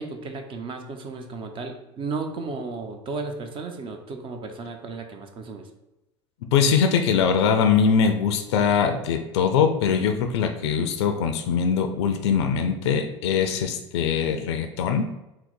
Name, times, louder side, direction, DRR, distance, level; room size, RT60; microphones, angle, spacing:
voice 1, 0.0-5.7, right 4 dB, 35° right, 5 dB, 0.5 m, -34 dB
voice 2, 6.5-15.1, left 6 dB, 65° left, 7 dB, 0.4 m, -22 dB
3.8 x 2.0 x 4.3 m, 0.95 s
figure-of-eight pair, 75°, 15 cm